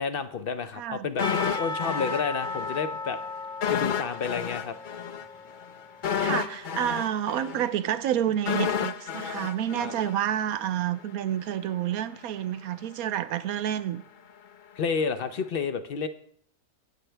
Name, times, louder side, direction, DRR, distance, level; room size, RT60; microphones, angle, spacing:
voice 1, 0.0-3.2 3.7-4.7 9.8-9.9 14.8-16.1, left 5 dB, 50° left, 0.7 m, -30 dB
voice 2, 0.8-1.1 6.2-14.0, right 10 dB, 70° right, 1.1 m, -29 dB
sound 1, 1.2-2.8 3.1-3.2 3.6-10.7 11.0-11.1, left 7 dB, 85° left, 0.4 m, -31 dB
Percussion / Church bell, 1.2-6.5, left 3 dB, 5° left, 0.6 m, -36 dB
23.5 x 8.3 x 3.4 m
omnidirectional pair, 1.6 m